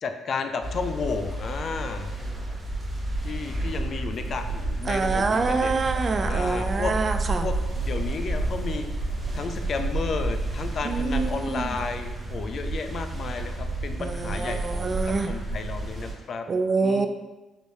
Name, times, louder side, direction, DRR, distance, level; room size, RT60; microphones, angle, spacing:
voice 1, 0.0-2.1 3.2-6.9 7.4-8.9 9.3-16.4 16.8-17.1, left 5 dB, 55° left, 7 dB, 0.4 m, -33 dB
sound 1, 0.6-16.1, right 2 dB, 20° right, 1.0 m, -30 dB
voice 2, 4.9-7.5 10.8-11.8 14.0-15.3 16.5-17.1, right 4 dB, 40° right, 8 dB, 0.3 m, -26 dB
4.9 x 2.6 x 3.1 m, 1.1 s
cardioid pair, 90°, 0 cm